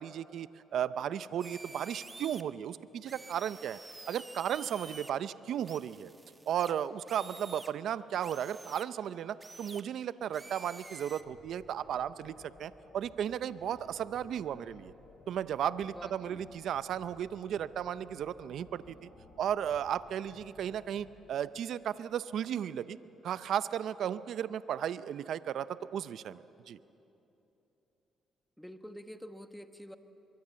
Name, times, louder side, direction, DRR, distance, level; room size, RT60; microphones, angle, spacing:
voice 1, 0.0-3.8 4.1-6.1 6.5-14.9 15.3-19.1 19.4-23.0 23.2-26.8, right 9 dB, 70° right, 15 dB, 0.5 m, -35 dB
sound 1, 1.4-2.4 3.1-5.1 5.6-7.7 8.2-8.9 9.4-9.8 10.3-11.2, right 3 dB, 25° right, 1.1 m, -49 dB
sound 2, 11.1-21.1, left 3 dB, 70° left, 5.2 m, -57 dB
voice 2, 15.9-16.4 28.6-30.0, equal, 5° left, 8 dB, 1.2 m, -47 dB
23.5 x 23.0 x 7.5 m, 3.0 s
cardioid pair, 90°, 0 cm